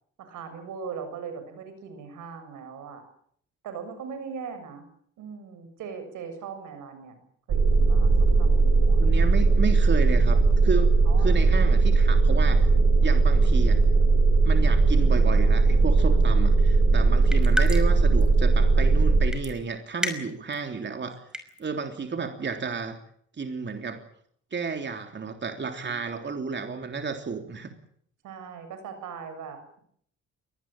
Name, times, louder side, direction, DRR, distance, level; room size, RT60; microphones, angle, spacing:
voice 1, 0.2-3.0 3.6-4.8 5.2-7.2 7.5-9.0 11.1-11.4 17.4-17.8 25.7-26.0 28.2-29.8, right 6 dB, 85° right, 9 dB, 7.2 m, -40 dB
sound 1, 7.5-19.3, right 3 dB, 55° right, 6.4 m, -19 dB
voice 2, 9.0-10.9 11.2-12.6 13.0-13.8 14.4-21.2 21.6-23.0 23.4-24.0 24.5-27.7, right 5 dB, 35° right, 6 dB, 3.3 m, -32 dB
sound 2, 17.3-18.0 18.2-18.3 19.3-19.5 20.0-20.6 21.1-21.6, equal, ahead, 5.6 m, -29 dB
24.0 x 19.5 x 9.1 m, 0.65 s
cardioid pair, 90°, 30 cm